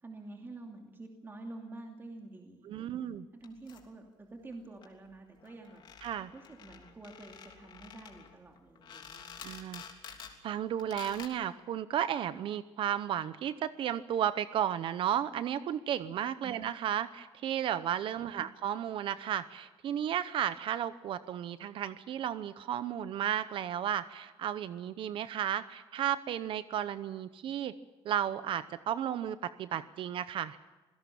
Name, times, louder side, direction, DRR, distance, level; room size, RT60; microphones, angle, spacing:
voice 1, 0.0-3.1 3.3-5.8 6.3-9.5 16.4-16.6, right 2 dB, 25° right, 1 dB, 2.7 m, -48 dB
voice 2, 2.7-3.3 6.0-6.3 9.4-9.8 10.4-27.7 28.0-30.6, right 10 dB, 65° right, 13 dB, 0.8 m, -33 dB
sound 1, 3.4-3.8 4.5-4.6 4.8-4.9 5.1-5.2 5.4-10.4 10.8-11.3, left 7 dB, 55° left, 3.2 m, -49 dB
27.0 x 17.0 x 7.1 m, 1.2 s
cardioid pair, 130°, 10 cm